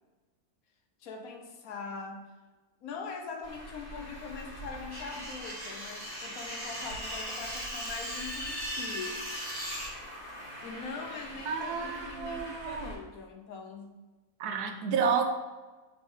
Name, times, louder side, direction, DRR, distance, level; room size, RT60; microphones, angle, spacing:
voice 1, 1.0-2.3 2.8-9.3 10.6-14.0, left 4 dB, 70° left, 3 dB, 1.2 m, -42 dB
Traffic noise roadway noise, 3.4-12.9, equal, 30° left, 1.2 m, -46 dB
sound 1, 4.9-9.9, equal, 15° right, 1.0 m, -38 dB
voice 2, 11.5-12.9 14.4-15.2, right 6 dB, 85° right, 5 dB, 1.2 m, -30 dB
5.4 x 3.2 x 5.4 m, 1.2 s
omnidirectional pair, 1.6 m